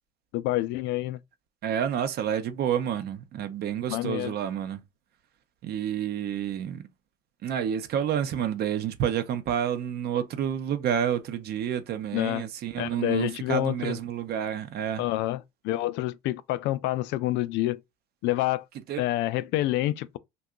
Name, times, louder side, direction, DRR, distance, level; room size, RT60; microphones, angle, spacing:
voice 1, 0.3-1.2 3.9-4.3 12.1-12.5 12.8-14.0 15.0-17.8 18.2-18.6 19.0-20.2, left 16 dB, 60° left, 0.4 m, -28 dB
voice 2, 1.6-4.8 5.6-6.8 7.4-15.1 18.9-19.0, right 9 dB, 50° right, 0.7 m, -29 dB
2.8 x 2.3 x 3.5 m
supercardioid pair, 85°, 21 cm